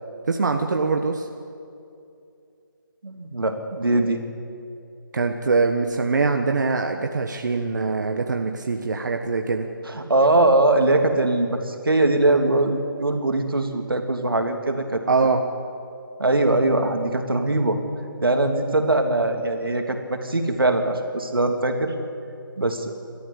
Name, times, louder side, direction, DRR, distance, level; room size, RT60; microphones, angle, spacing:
voice 1, 0.3-1.3 5.1-9.7 15.1-15.4, right 4 dB, 55° right, 4 dB, 1.5 m, -23 dB
voice 2, 3.0-4.2 9.9-15.0 16.2-17.8 18.2-21.9 22.6-22.9, right 2 dB, 85° right, 5 dB, 3.0 m, -21 dB
30.0 x 13.5 x 8.5 m, 2.6 s
figure-of-eight pair, 160°, 12 cm